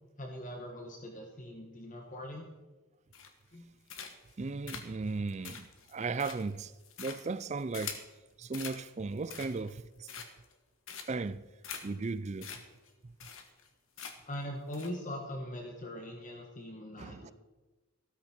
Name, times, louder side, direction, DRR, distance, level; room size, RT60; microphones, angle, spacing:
voice 1, 0.2-2.5 3.5-3.7 14.2-17.3, left 1 dB, 35° left, 1.4 m, -41 dB
sound 1, 3.1-3.5 3.9-4.3 4.7-8.1 8.5-8.8 9.2-9.7 10.1-10.5 10.9-11.3 11.6-11.8 12.1-12.2 12.4-12.6 12.9-13.0 13.2-13.7 14.0-14.3 14.7-14.9, left 7 dB, 65° left, 1.5 m, -44 dB
voice 2, 4.4-6.7 7.0-8.0 8.4-10.1 11.1-11.4 11.8-12.6 13.0-13.1 17.0-17.3, right 4 dB, 30° right, 0.4 m, -36 dB
14.0 x 13.0 x 4.4 m
head